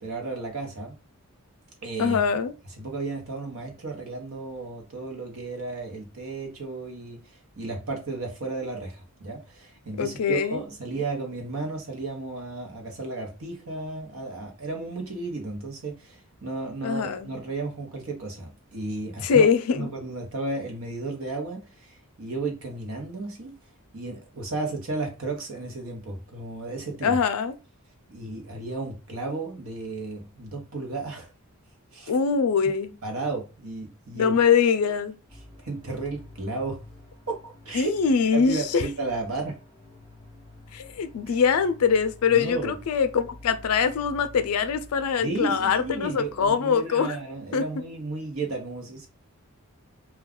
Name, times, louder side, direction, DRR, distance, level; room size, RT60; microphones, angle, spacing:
voice 1, 0.0-0.9 1.8-2.2 2.8-7.2 7.6-19.4 19.7-23.5 23.9-27.2 28.1-31.3 31.9-32.1 32.6-32.7 33.0-34.4 35.6-36.8 37.3-37.9 38.3-39.5 41.3-41.4 42.3-42.7 45.2-49.1, right 3 dB, 70° right, 0.9 m, -33 dB
voice 2, 2.0-2.5 10.0-10.6 16.8-17.3 19.2-19.9 27.0-27.6 32.1-32.9 34.1-35.2 37.7-38.8 40.7-47.2 47.5-47.6, left 6 dB, 80° left, 0.4 m, -23 dB
sound 1, 35.3-46.5, left 2 dB, 20° right, 1.0 m, -49 dB
2.3 x 2.3 x 3.6 m
head